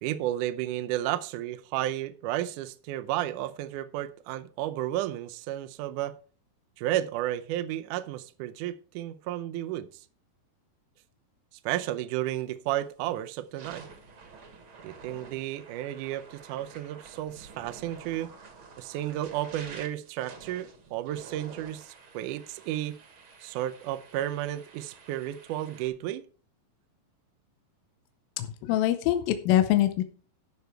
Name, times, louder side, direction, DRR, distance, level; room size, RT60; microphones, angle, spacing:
voice 1, 0.0-6.2 6.8-9.9 11.6-13.9 14.8-18.3 18.8-23.0 23.4-26.2, right 13 dB, 75° right, 2.0 m, -32 dB
sound 1, 12.7-12.9 13.4-25.9, right 4 dB, 45° right, 2.0 m, -50 dB
voice 2, 28.4-30.0, left 13 dB, 80° left, 2.5 m, -24 dB
12.0 x 6.8 x 4.6 m
omnidirectional pair, 4.2 m